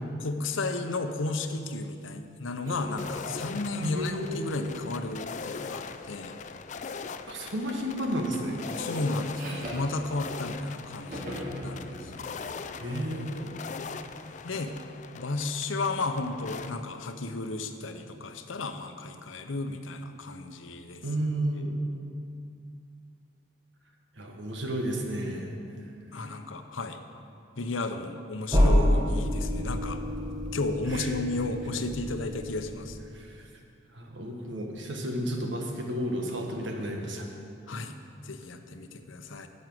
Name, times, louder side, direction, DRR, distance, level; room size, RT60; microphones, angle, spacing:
voice 1, 0.2-6.3 8.8-12.4 14.4-14.7 15.1-21.0 26.1-27.0 27.6-30.0 30.5-33.0 37.7-37.9 38.2-39.5, left 2 dB, 85° left, 7 dB, 0.8 m, -33 dB
sound 1, 2.6-5.9 6.8-7.2 7.5-10.7 11.1-14.6, equal, 45° right, 2.2 m, -43 dB
sound 2, 3.0-16.7, left 5 dB, 40° left, 0.4 m, -41 dB
voice 2, 3.8-4.8 7.3-8.6 12.8-13.6 21.0-21.8 24.2-25.5 30.9-31.1 33.1-33.4 33.9-37.3, equal, 70° right, 1 dB, 1.5 m, -32 dB
sound 3, 28.5-33.2, equal, 20° right, 1.2 m, -27 dB
10.5 x 6.4 x 7.8 m, 2.5 s
head